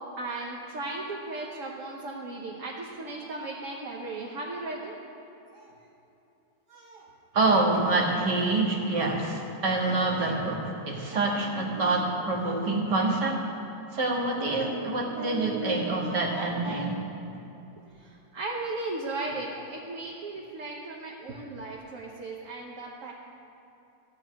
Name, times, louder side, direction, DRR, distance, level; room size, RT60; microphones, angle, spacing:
voice 1, 0.2-4.9 5.5-5.7 6.7-7.1 8.0-8.1 8.7-8.9 9.9-10.3 11.1-11.4 12.1-12.6 18.0-23.1, right 2 dB, 55° right, -2 dB, 1.3 m, -37 dB
voice 2, 7.3-13.4 13.9-17.0, right 2 dB, 80° right, -2 dB, 2.4 m, -26 dB
14.5 x 5.4 x 8.9 m, 2.9 s
omnidirectional pair, 1.8 m